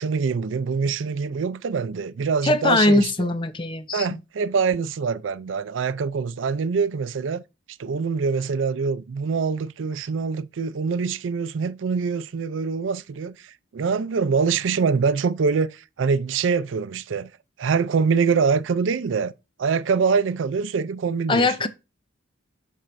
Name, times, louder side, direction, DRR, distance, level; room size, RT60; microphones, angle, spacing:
voice 1, 0.0-3.3 3.9-7.4 7.8-17.3 17.6-19.3 19.6-21.7, right 5 dB, 85° right, 0.4 m, -24 dB
voice 2, 2.4-4.1 21.3-21.7, left 2 dB, 25° left, 0.5 m, -21 dB
7.5 x 5.6 x 2.6 m
head